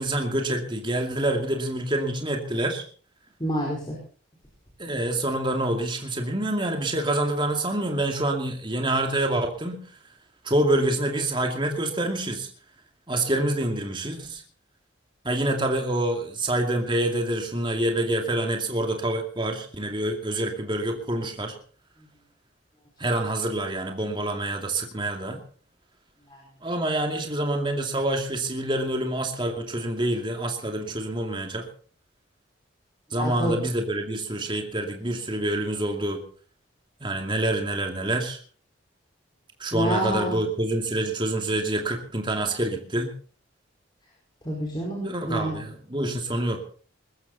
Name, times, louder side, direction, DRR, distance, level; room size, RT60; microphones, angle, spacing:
voice 1, 0.0-2.8 4.8-9.8 10.4-12.5 13.1-14.4 15.2-21.5 23.0-25.4 26.6-31.7 33.1-36.2 37.0-38.4 39.6-43.1 45.0-46.6, right 1 dB, 25° right, 3 dB, 2.4 m, -27 dB
voice 2, 3.4-3.9 33.2-33.6 39.7-40.4 44.4-45.6, equal, 25° left, -2 dB, 5.0 m, -28 dB
21.0 x 14.0 x 4.2 m, 0.42 s
head